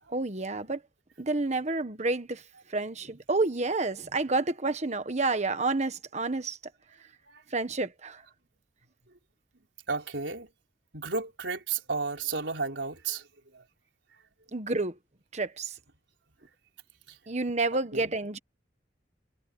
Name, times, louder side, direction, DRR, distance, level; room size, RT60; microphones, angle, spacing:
voice 1, 0.1-0.8 1.2-2.4 2.7-6.6 7.5-8.2 14.5-15.0 15.3-15.8 17.3-18.4, right 3 dB, 40° right, 1.5 m, -29 dB
voice 2, 9.9-10.5 10.9-13.2 13.5-13.6 17.1-17.2 17.9-18.1, right 4 dB, 90° right, 4.2 m, -33 dB
head